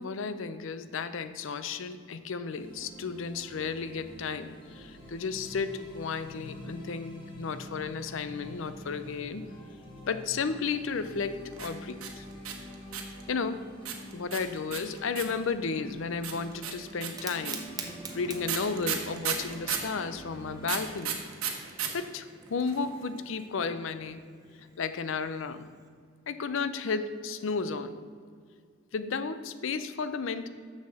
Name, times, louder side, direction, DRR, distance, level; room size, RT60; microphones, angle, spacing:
voice 1, 0.0-9.4 10.1-12.3 13.3-13.6 14.1-21.2 21.9-24.3 24.8-25.7 26.3-28.0 28.9-30.5, left 5 dB, 60° left, 12 dB, 0.5 m, -33 dB
sound 1, 2.5-20.9, equal, 20° left, 1.3 m, -47 dB
sound 2, 11.5-13.2 13.8-15.4 16.2-19.9 20.6-21.9 22.1-22.2 22.4-22.9, right 9 dB, 85° right, 1.1 m, -33 dB
Fire, 17.0-25.9, right 4 dB, 15° right, 0.6 m, -47 dB
6.9 x 6.4 x 6.5 m, 2.1 s
head